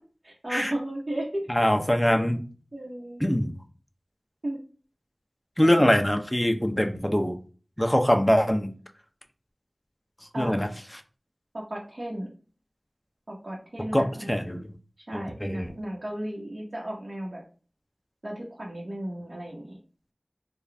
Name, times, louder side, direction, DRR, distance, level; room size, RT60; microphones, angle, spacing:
voice 1, 0.2-1.5 2.7-3.2 4.4-4.6 5.6-5.9 10.3-10.6 11.5-12.3 13.3-14.3 15.1-17.4 18.2-19.8, right 1 dB, 75° right, -5 dB, 1.1 m, -34 dB
voice 2, 1.5-2.4 3.2-3.5 5.6-7.4 7.8-8.7 10.4-10.7 13.9-14.7 15.1-15.7, equal, 10° left, 5 dB, 0.7 m, -23 dB
3.9 x 2.4 x 3.3 m, 0.38 s
wide cardioid pair, 40°, 0 cm